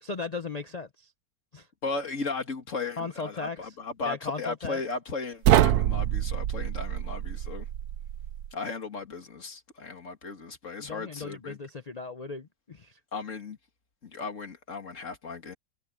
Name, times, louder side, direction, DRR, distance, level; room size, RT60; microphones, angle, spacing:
voice 1, 0.0-1.1 1.5-1.7 3.0-4.8 10.8-13.0, left 4 dB, 75° left, 0.3 m, -37 dB
voice 2, 1.8-7.7 8.5-11.6 13.1-13.6 14.0-15.5, left 4 dB, 45° left, 2.7 m, -36 dB
sound 1, 5.4-8.5, right 12 dB, 70° right, 1.1 m, -25 dB
omnidirectional pair, 1.9 m